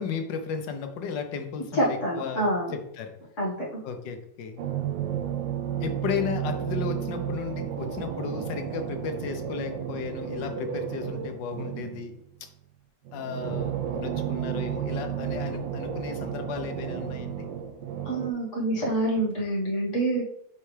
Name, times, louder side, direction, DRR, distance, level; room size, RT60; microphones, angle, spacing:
voice 1, 0.0-3.1 3.8-4.6 5.8-12.2 13.1-17.5, left 6 dB, 85° left, 6 dB, 1.5 m, -34 dB
voice 2, 1.7-2.7 3.4-3.7 18.1-20.2, right 1 dB, 45° left, -3 dB, 1.7 m, -26 dB
sound 1, 4.6-12.2 13.1-18.3, right 9 dB, 85° right, 1.3 m, -32 dB
8.6 x 3.4 x 3.3 m, 0.75 s
omnidirectional pair, 1.9 m